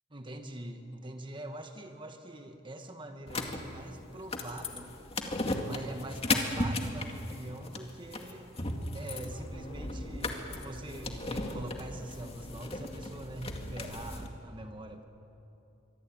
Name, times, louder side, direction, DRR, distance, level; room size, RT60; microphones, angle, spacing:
voice 1, 0.1-4.9 5.6-8.5 8.9-15.0, right 1 dB, 25° right, 6 dB, 1.5 m, -43 dB
sound 1, 3.3-14.3, left 2 dB, 30° left, 2.2 m, -36 dB
24.0 x 24.0 x 9.1 m, 2.9 s
head